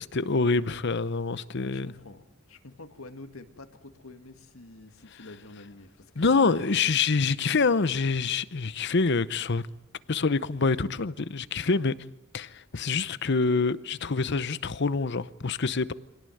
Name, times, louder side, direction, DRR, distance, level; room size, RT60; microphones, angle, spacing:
voice 1, 0.1-1.9 6.2-9.6 10.1-11.9 12.3-15.9, left 4 dB, 55° left, 0.8 m, -26 dB
voice 2, 1.5-2.2 2.5-6.9, left 2 dB, 85° left, 2.0 m, -47 dB
25.0 x 18.0 x 9.2 m
head